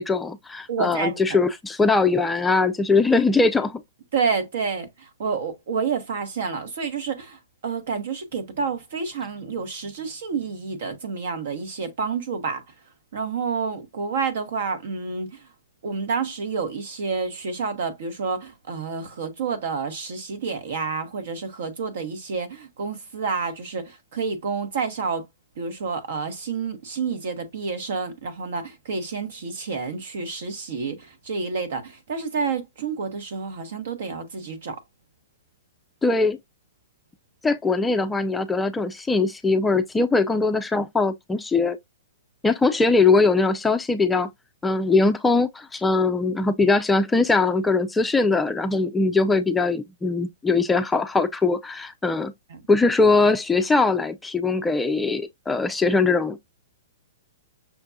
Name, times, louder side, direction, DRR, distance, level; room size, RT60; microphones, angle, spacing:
voice 1, 0.0-3.8 36.0-36.4 37.4-41.8 42.4-44.3 44.6-52.3 52.7-56.4, left 3 dB, 10° left, 0.4 m, -21 dB
voice 2, 0.7-1.4 4.1-12.6 13.1-15.5 15.8-25.2 25.6-34.8 52.5-52.6, right 5 dB, 55° right, 1.1 m, -29 dB
6.0 x 2.2 x 2.6 m
figure-of-eight pair, 110°, 0 cm